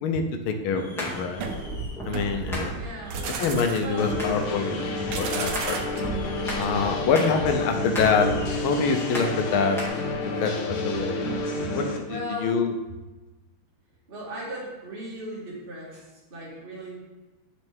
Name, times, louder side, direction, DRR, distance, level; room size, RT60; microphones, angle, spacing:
voice 1, 0.0-1.5 2.0-2.7 3.4-5.8 6.5-9.8 10.4-11.2 11.7-12.7, left 5 dB, 80° left, 5 dB, 1.6 m, -26 dB
sound 1, 0.7-9.9, equal, ahead, 1.9 m, -37 dB
sound 2, 1.4-7.1, right 4 dB, 65° right, 1.3 m, -34 dB
voice 2, 2.7-3.3 3.8-4.1 7.7-7.8 12.0-12.6 14.1-16.9, equal, 25° right, -6 dB, 1.8 m, -37 dB
sound 3, 4.0-12.0, left 2 dB, 65° left, 0.7 m, -30 dB
10.5 x 4.4 x 3.6 m, 1.2 s
omnidirectional pair, 2.3 m